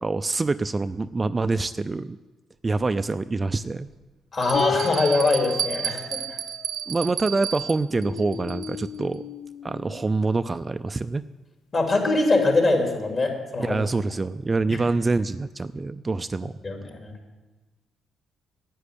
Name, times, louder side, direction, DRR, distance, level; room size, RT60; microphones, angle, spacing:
voice 1, 0.0-2.2 2.6-3.9 6.9-9.2 9.6-11.3 13.6-16.5, right 3 dB, 25° right, 12 dB, 0.4 m, -26 dB
Bell, 2.8-2.9 3.6-3.7 4.4-9.0, right 9 dB, 70° right, 0.6 m, -33 dB
voice 2, 4.3-6.4 11.7-13.8 14.7-14.8 16.6-17.1, left 2 dB, 40° left, 2 dB, 3.0 m, -23 dB
sound 1, 4.5-7.2 7.8-10.3, left 9 dB, 75° left, 0.5 m, -35 dB
10.0 x 9.4 x 8.4 m, 1.2 s
cardioid pair, 90°, 0 cm